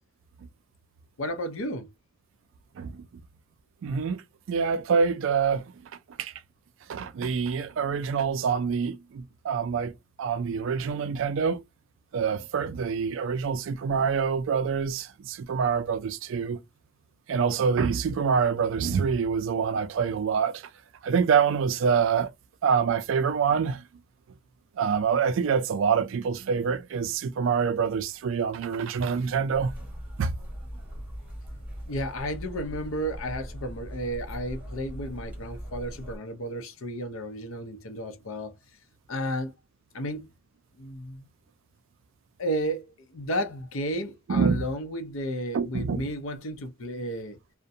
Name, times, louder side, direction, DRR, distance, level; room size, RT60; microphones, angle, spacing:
voice 1, 1.2-1.9 31.9-38.5 39.1-39.5 39.9-40.3 40.8-41.3 42.4-42.8 43.1-47.4, equal, 70° left, 0.6 m, -32 dB
voice 2, 3.8-4.2 4.5-5.6 6.2-6.3 6.9-9.9 10.2-11.6 12.1-16.6 17.3-20.6 21.0-22.3 22.6-23.8 24.8-29.7 30.2-30.3 44.3-44.6 45.5-46.1, right 6 dB, 65° right, 0.3 m, -26 dB
sound 1, 29.5-36.2, equal, 10° right, 1.1 m, -40 dB
2.5 x 2.1 x 2.7 m
head